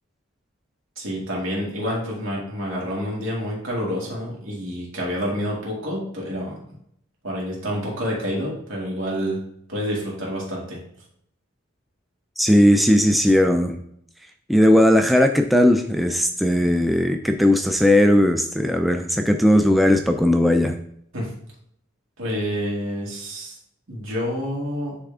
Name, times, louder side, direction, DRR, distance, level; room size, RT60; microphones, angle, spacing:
voice 1, 1.0-6.6 7.2-9.4 9.7-10.8 21.1-21.3 22.2-23.6 23.9-25.0, equal, 75° right, -4 dB, 2.5 m, -28 dB
voice 2, 12.4-13.8 14.5-20.8, left 1 dB, ahead, 5 dB, 0.3 m, -17 dB
9.8 x 3.4 x 3.6 m, 0.70 s
head